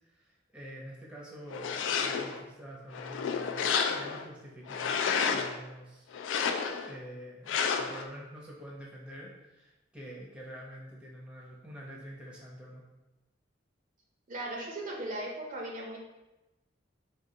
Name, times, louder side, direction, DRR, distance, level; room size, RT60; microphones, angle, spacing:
voice 1, 0.1-6.1 6.8-12.8, equal, 5° right, -4 dB, 0.6 m, -47 dB
sound 1, 1.5-2.4 2.9-4.3 4.7-5.6 6.1-6.9 7.5-8.0, left 6 dB, 70° left, 0.3 m, -30 dB
voice 2, 14.3-16.0, right 1 dB, 45° right, -1 dB, 0.5 m, -37 dB
4.7 x 2.3 x 2.7 m, 1.0 s
head